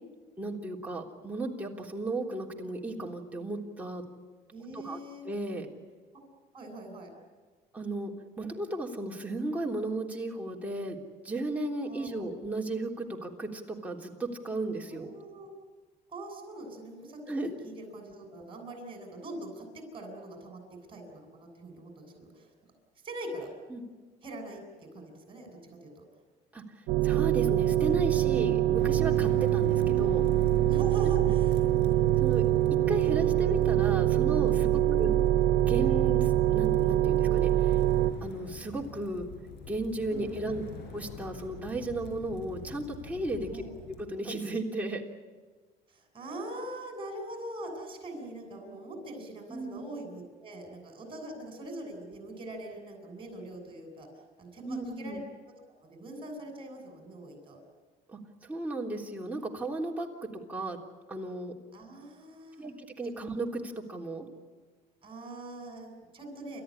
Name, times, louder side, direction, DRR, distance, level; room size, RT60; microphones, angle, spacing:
voice 1, 0.4-4.0 4.7-5.0 5.2-5.7 7.7-11.0 11.2-15.1 17.3-17.6 23.7-23.8 26.5-26.6 27.0-30.2 32.2-32.4 32.9-35.1 35.6-37.8 38.2-39.3 39.7-40.6 40.9-43.6 44.1-45.0 49.5-49.8 54.6-55.2 58.1-60.1 60.5-60.8 61.1-61.5 62.6-64.3, right 2 dB, 10° right, -1 dB, 3.4 m, -35 dB
voice 2, 4.5-5.3 6.5-7.1 11.8-12.4 14.9-15.5 16.1-20.6 20.9-22.5 23.0-23.5 24.2-25.5 25.8-26.0 30.7-31.6 34.8-35.2 40.1-40.6 43.5-43.7 45.9-54.1 54.4-55.2 55.8-57.6 61.7-62.7 65.0-66.6, right 1 dB, 30° right, 3 dB, 7.8 m, -42 dB
sound 1, 26.9-38.1, right 14 dB, 85° right, 1.0 m, -24 dB
sound 2, 28.8-44.0, left 5 dB, 75° left, 5.6 m, -44 dB
29.5 x 14.0 x 9.9 m, 1.4 s
cardioid pair, 110°, 17 cm